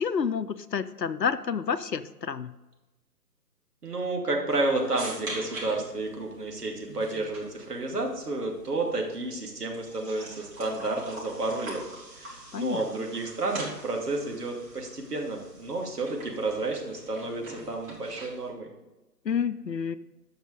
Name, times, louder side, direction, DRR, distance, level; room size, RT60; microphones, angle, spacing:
voice 1, 0.0-2.5 12.5-12.8 19.2-20.0, left 6 dB, 80° left, 13 dB, 0.8 m, -29 dB
voice 2, 3.8-11.8 12.2-18.7, right 2 dB, 70° right, 0 dB, 2.7 m, -31 dB
sound 1, 4.5-18.5, right 2 dB, 50° right, 4.0 m, -44 dB
12.5 x 5.9 x 5.1 m, 1.1 s
figure-of-eight pair, 140°, 49 cm